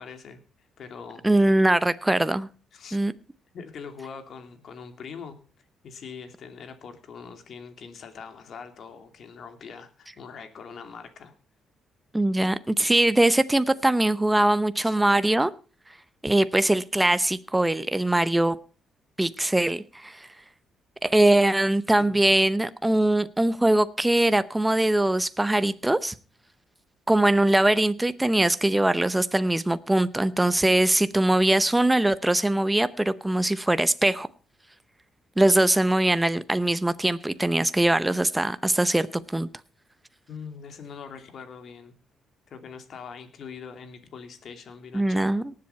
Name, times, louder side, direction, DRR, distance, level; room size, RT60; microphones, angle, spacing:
voice 1, 0.0-1.2 2.7-3.0 3.5-5.4 5.8-11.3 14.8-15.0 22.0-22.3 40.3-42.0 42.5-45.3, left 6 dB, 60° left, 2.6 m, -42 dB
voice 2, 1.2-2.5 2.9-3.1 12.1-15.5 16.2-18.6 19.2-20.3 21.0-26.1 27.1-34.3 35.4-39.5 44.9-45.5, right 1 dB, 10° right, 0.8 m, -22 dB
19.0 x 7.7 x 4.4 m
cardioid pair, 90°, 0 cm